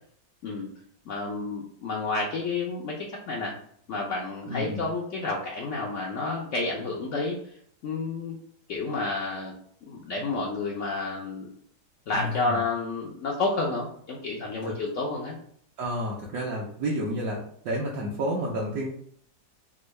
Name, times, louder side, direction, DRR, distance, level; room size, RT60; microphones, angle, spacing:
voice 1, 1.1-3.5 3.9-7.4 7.8-8.4 8.7-9.5 9.9-11.5 12.1-15.4, left 3 dB, 80° left, -2 dB, 0.6 m, -30 dB
voice 2, 4.5-4.9 12.1-12.6 14.6-14.7 15.8-18.9, equal, 70° right, -4 dB, 1.1 m, -30 dB
3.6 x 2.2 x 3.1 m, 0.63 s
omnidirectional pair, 1.9 m